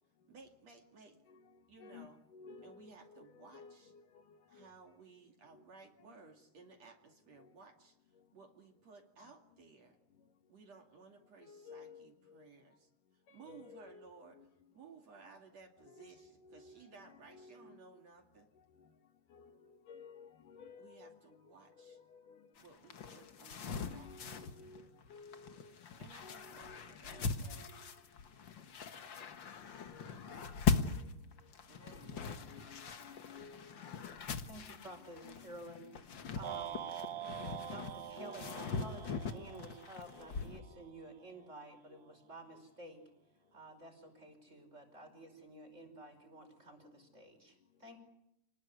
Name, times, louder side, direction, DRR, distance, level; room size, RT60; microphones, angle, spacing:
voice 1, 0.3-1.2 1.7-2.2 2.6-3.9 4.5-8.0 8.3-10.0 10.5-12.9 13.3-14.4 14.7-18.5 20.8-22.0 22.6-24.5 26.0-27.7 31.7-32.3, right 4 dB, 50° right, 3.4 m, -58 dB
voice 2, 1.8-4.7 5.5-5.6 6.0-6.1 6.6-6.8 7.4-7.5 11.4-12.5 13.3-14.5 15.8-18.0 18.6-18.9 19.3-22.5 23.0-23.3 23.8-25.8 26.2-28.0 29.2-29.3 29.9-30.1 30.9-31.1 31.8-34.1 34.5-36.5 37.6-37.8 38.2-39.5 40.0-40.5 41.9-42.0 42.5-42.6, left 5 dB, 70° left, 3.4 m, -57 dB
sound 1, 22.6-40.6, left 5 dB, 50° left, 1.5 m, -40 dB
voice 3, 34.5-36.8 37.6-43.0 43.5-48.0, right 2 dB, 20° right, 5.5 m, -52 dB
sound 2, 36.4-40.7, right 10 dB, 80° right, 2.8 m, -45 dB
29.5 x 20.5 x 9.8 m
omnidirectional pair, 4.0 m